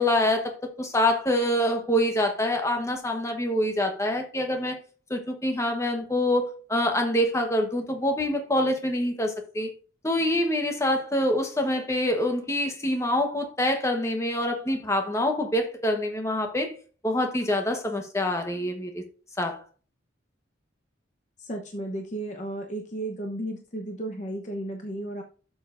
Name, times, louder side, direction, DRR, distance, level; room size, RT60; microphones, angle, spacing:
voice 1, 0.0-4.8 5.1-9.7 10.0-16.7 17.0-19.0 19.4-19.6, left 1 dB, 15° left, 1.1 m, -25 dB
voice 2, 21.4-25.2, right 1 dB, 40° left, 0.9 m, -34 dB
12.0 x 7.3 x 2.6 m
head